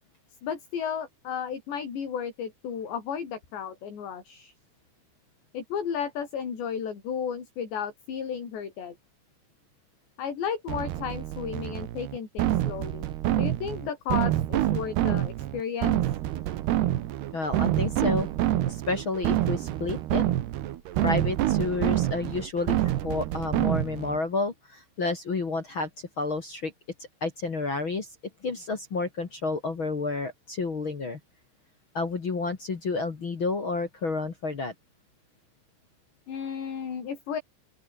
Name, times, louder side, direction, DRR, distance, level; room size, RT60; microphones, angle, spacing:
voice 1, 0.4-4.5 5.5-9.0 10.2-13.1 13.3-16.0 36.3-37.4, left 7 dB, 60° left, 6.8 m, -33 dB
sound 1, 10.7-24.2, right 13 dB, 65° right, 3.0 m, -27 dB
voice 2, 17.3-18.3 18.7-20.3 21.0-26.7 27.2-28.1 28.4-31.2 31.9-34.7, left 3 dB, 40° left, 1.8 m, -30 dB
open air
omnidirectional pair, 5.6 m